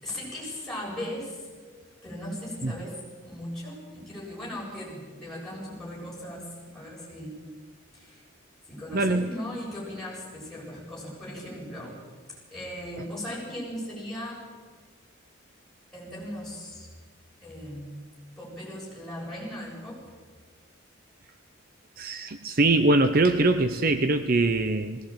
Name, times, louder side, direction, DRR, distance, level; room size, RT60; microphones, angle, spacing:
voice 1, 0.0-1.5 2.0-6.5 6.7-7.4 7.9-8.2 8.7-11.9 12.3-14.4 15.9-16.9 17.4-18.0 18.4-20.0, left 1 dB, ahead, -6 dB, 7.7 m, -38 dB
voice 2, 8.9-9.2 22.0-25.0, right 2 dB, 45° right, 9 dB, 0.8 m, -22 dB
19.5 x 18.0 x 8.9 m, 1.5 s
head